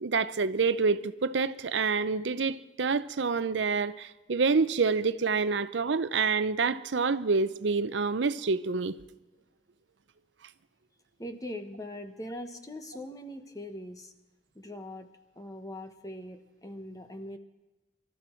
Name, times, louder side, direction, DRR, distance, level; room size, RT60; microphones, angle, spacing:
voice 1, 0.0-9.0, right 4 dB, 80° right, 0.6 m, -27 dB
voice 2, 11.2-14.1 14.5-15.1 15.4-17.4, left 1 dB, 20° left, 1.1 m, -41 dB
24.0 x 13.0 x 4.5 m
head